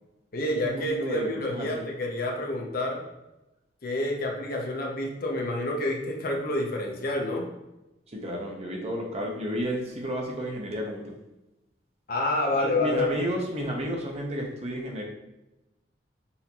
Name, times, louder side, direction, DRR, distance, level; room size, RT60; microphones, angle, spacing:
voice 1, 0.3-3.0 3.8-7.5 12.1-13.2, left 1 dB, 55° left, 0 dB, 0.8 m, -28 dB
voice 2, 0.9-1.8 8.1-11.1 12.6-15.0, equal, 35° right, 0 dB, 0.8 m, -31 dB
5.6 x 2.8 x 2.9 m, 0.96 s
head